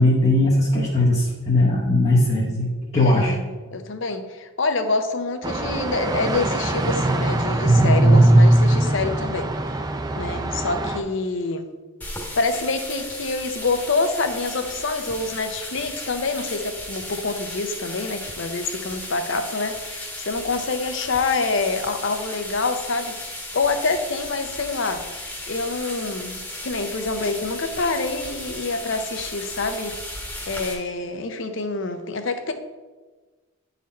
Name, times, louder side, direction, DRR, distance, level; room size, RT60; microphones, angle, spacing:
voice 1, 0.0-2.7 2.9-3.3, left 1 dB, 30° left, -4 dB, 0.8 m, -19 dB
voice 2, 3.0-9.5 10.2-11.7 12.4-25.0 25.5-29.9 30.5-32.5, left 3 dB, 60° left, 8 dB, 0.6 m, -26 dB
sound 1, 5.4-11.0, right 1 dB, 20° right, 0.4 m, -19 dB
sound 2, 12.0-30.7, left 1 dB, 10° left, 1.1 m, -35 dB
9.8 x 4.1 x 4.2 m, 1.3 s
head